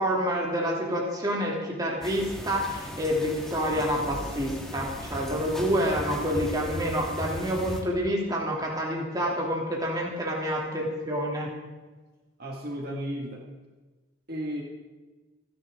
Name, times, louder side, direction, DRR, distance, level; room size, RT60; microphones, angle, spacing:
voice 1, 0.0-11.5, equal, 20° right, -3 dB, 2.9 m, -28 dB
sound 1, 2.0-7.8, equal, 5° left, 1.8 m, -37 dB
voice 2, 12.4-13.4 14.3-14.6, equal, 45° right, -2 dB, 2.0 m, -33 dB
28.5 x 11.0 x 3.8 m, 1.2 s
head